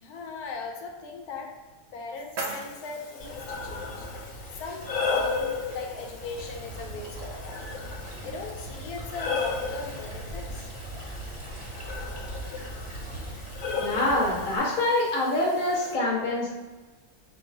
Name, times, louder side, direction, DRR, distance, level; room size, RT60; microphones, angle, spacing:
voice 1, 0.0-1.5 1.9-4.1 4.6-7.7 8.2-10.7, left 4 dB, 90° left, 1 dB, 1.2 m, -39 dB
sound 1, 1.6-3.6, right 2 dB, 55° right, 0.9 m, -39 dB
Breathing, 2.5-16.0, left 4 dB, 65° left, 0.9 m, -35 dB
sound 2, 3.2-14.6, right 1 dB, 25° right, 0.7 m, -40 dB
voice 2, 13.8-16.5, left 1 dB, 35° left, -5 dB, 1.2 m, -25 dB
4.3 x 2.3 x 4.5 m, 1.3 s
omnidirectional pair, 1.5 m